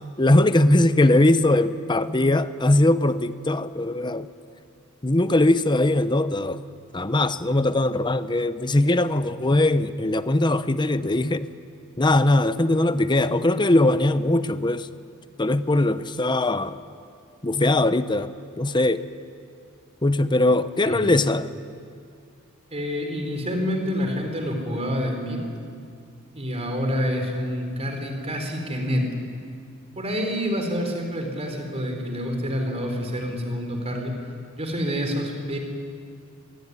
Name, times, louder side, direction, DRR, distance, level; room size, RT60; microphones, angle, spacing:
voice 1, 0.2-4.3 5.0-6.6 6.9-11.5 12.0-14.9 15.4-16.8 17.4-18.3 18.6-19.0 20.0-21.5, left 1 dB, 20° left, 12 dB, 0.7 m, -20 dB
voice 2, 20.8-21.2 22.7-25.4 26.3-29.2 30.0-34.1 34.6-35.6, equal, 30° right, 3 dB, 4.5 m, -27 dB
25.5 x 21.5 x 9.7 m, 2.3 s
head